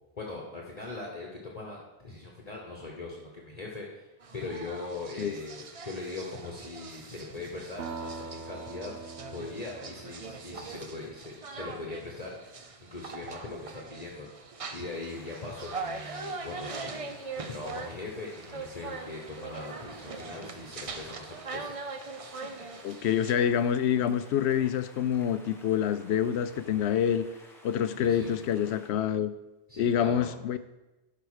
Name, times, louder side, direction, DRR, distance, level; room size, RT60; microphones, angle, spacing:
voice 1, 0.2-4.1 4.3-8.9 9.3-21.7 28.0-28.3 29.7-30.3, left 3 dB, 40° left, -1 dB, 1.2 m, -41 dB
sound 1, 4.2-23.3, right 4 dB, 40° right, 0.7 m, -42 dB
sound 2, 7.8-11.6, right 4 dB, 70° right, 1.1 m, -43 dB
sound 3, 14.8-28.9, equal, ahead, 1.2 m, -54 dB
voice 2, 22.8-27.2 27.6-29.3 29.8-30.6, left 9 dB, 85° left, 13 dB, 0.9 m, -27 dB
11.5 x 5.0 x 4.9 m, 1.0 s
omnidirectional pair, 1.1 m